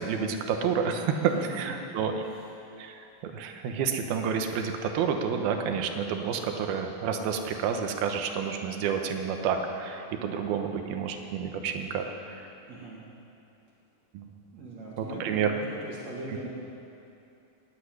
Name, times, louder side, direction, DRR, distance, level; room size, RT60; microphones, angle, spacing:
voice 1, 0.0-2.3 2.8-12.5 14.1-14.3 15.0-15.5, right 6 dB, 75° right, 5 dB, 2.9 m, -29 dB
voice 2, 12.7-13.0 14.5-16.5, right 2 dB, 50° right, -5 dB, 3.0 m, -40 dB
16.5 x 8.4 x 9.7 m, 2.7 s
omnidirectional pair, 4.5 m